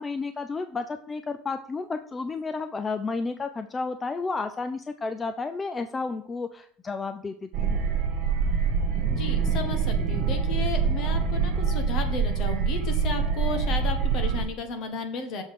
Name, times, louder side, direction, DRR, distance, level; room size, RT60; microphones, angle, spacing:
voice 1, 0.0-7.8, left 4 dB, 15° left, 9 dB, 0.3 m, -32 dB
sound 1, 7.5-14.4, right 6 dB, 50° right, 1.3 m, -25 dB
voice 2, 9.1-15.4, left 4 dB, 45° left, 6 dB, 1.3 m, -34 dB
6.9 x 3.9 x 6.3 m, 0.68 s
cardioid pair, 155°, 0 cm